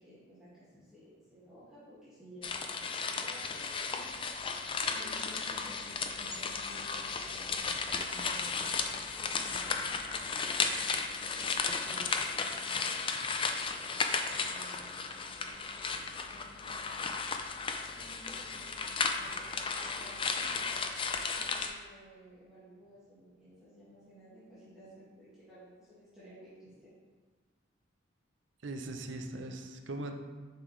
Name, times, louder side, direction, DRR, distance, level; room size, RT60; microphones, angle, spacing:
voice 1, 0.0-4.5 4.9-8.9 9.2-13.5 14.3-17.1 17.9-20.9 21.3-26.9, equal, 5° right, -13 dB, 1.9 m, -54 dB
paper scrunch, 2.4-21.7, left 5 dB, 25° left, 0.4 m, -34 dB
voice 2, 28.6-30.2, right 2 dB, 70° right, 5 dB, 0.6 m, -40 dB
7.2 x 5.3 x 3.2 m, 1.4 s
head